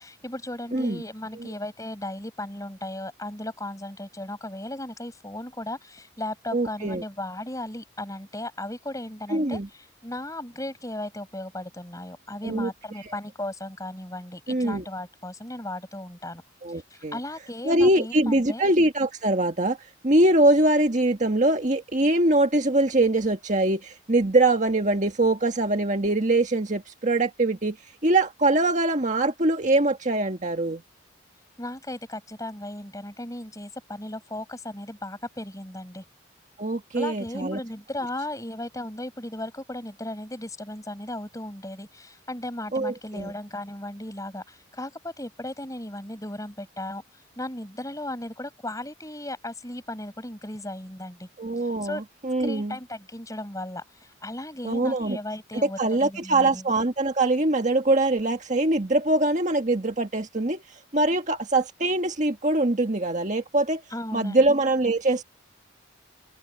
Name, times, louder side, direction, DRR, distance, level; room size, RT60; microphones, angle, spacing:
voice 1, 0.0-16.4 16.7-18.6 31.6-36.0 36.9-47.0 47.4-51.3 51.8-52.0 52.4-56.7 63.9-64.4, left 1 dB, 15° left, 7.6 m, -36 dB
voice 2, 0.7-1.0 1.3-1.5 6.5-7.0 9.3-9.7 12.4-12.7 14.5-14.8 16.6-17.2 17.6-19.8 20.0-27.8 28.0-30.8 36.6-37.6 42.7-43.3 51.4-52.7 54.6-55.2 55.5-60.6 60.9-63.8 64.1-65.2, right 2 dB, 40° right, 1.6 m, -23 dB
head